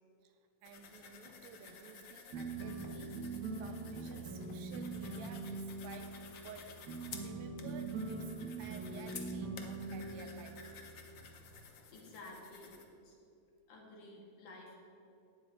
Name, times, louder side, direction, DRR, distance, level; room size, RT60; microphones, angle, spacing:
voice 1, 0.2-8.3 8.6-10.6, right 6 dB, 75° right, 7 dB, 2.0 m, -54 dB
sound 1, 0.6-12.9, left 6 dB, 65° left, 1.1 m, -54 dB
sound 2, 2.3-11.6, right 3 dB, 40° right, 1.4 m, -43 dB
voice 2, 11.4-12.8 13.0-13.2 13.7-14.8, left 2 dB, 80° left, -2 dB, 3.7 m, -53 dB
15.5 x 9.8 x 4.8 m, 2.6 s
omnidirectional pair, 3.4 m